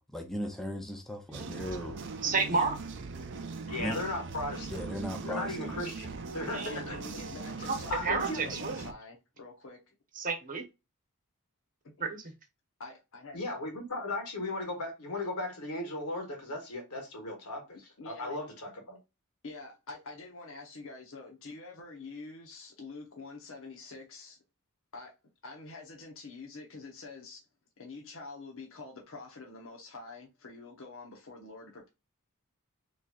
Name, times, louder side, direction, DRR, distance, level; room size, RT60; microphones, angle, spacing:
voice 1, 0.0-2.0 3.8-4.0 4.7-5.8, equal, ahead, 0.5 m, -37 dB
voice 2, 1.3-1.6 2.2-2.8 6.5-6.8 7.7-7.8 8.0-8.8 10.2-10.6 12.0-12.2, right 4 dB, 40° right, 1.0 m, -31 dB
sound 1, 1.3-8.9, right 4 dB, 55° right, 0.5 m, -40 dB
voice 3, 3.7-7.0 7.9-8.4 13.3-19.0, left 2 dB, 80° left, 1.8 m, -37 dB
voice 4, 6.7-9.8 12.8-13.4 18.0-18.4 19.4-24.4 24.9-25.1 25.4-27.4 27.8-31.9, left 3 dB, 65° left, 1.0 m, -46 dB
4.1 x 3.2 x 2.4 m
head